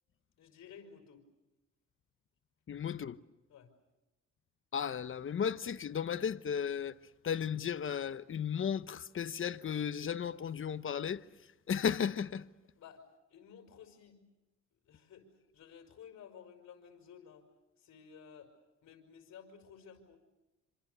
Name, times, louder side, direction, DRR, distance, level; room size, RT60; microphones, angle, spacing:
voice 1, 0.4-1.2 3.5-3.7 12.7-13.0 13.3-14.2 14.9-17.5 17.8-18.6 18.8-20.2, left 7 dB, 65° left, 5.6 m, -54 dB
voice 2, 2.7-3.2 4.7-7.0 7.2-11.2 11.7-12.4, left 7 dB, 40° left, 1.0 m, -34 dB
27.0 x 26.5 x 6.9 m
cardioid pair, 90°, 30 cm